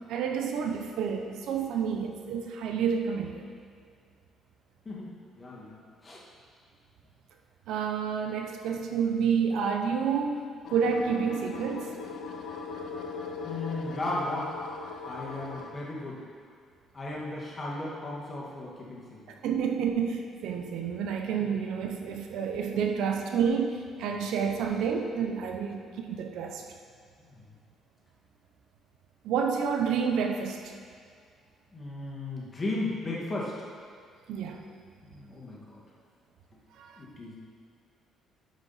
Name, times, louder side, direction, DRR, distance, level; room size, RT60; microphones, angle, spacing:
voice 1, 0.1-3.5 7.7-11.9 19.4-26.6 29.2-30.6 34.3-34.6 36.8-37.0, right 6 dB, 80° right, 3 dB, 0.7 m, -29 dB
voice 2, 4.9-5.8 6.0-6.2 13.4-14.5 15.1-16.2 16.9-19.0 22.7-23.0 24.1-24.2 27.3-27.4 31.7-33.5 35.0-35.8 37.0-37.4, left 2 dB, 25° left, -5 dB, 1.8 m, -35 dB
sound 1, 10.6-15.7, left 4 dB, 70° left, 0.9 m, -40 dB
12.0 x 5.1 x 4.1 m, 2.2 s
cardioid pair, 140°, 0 cm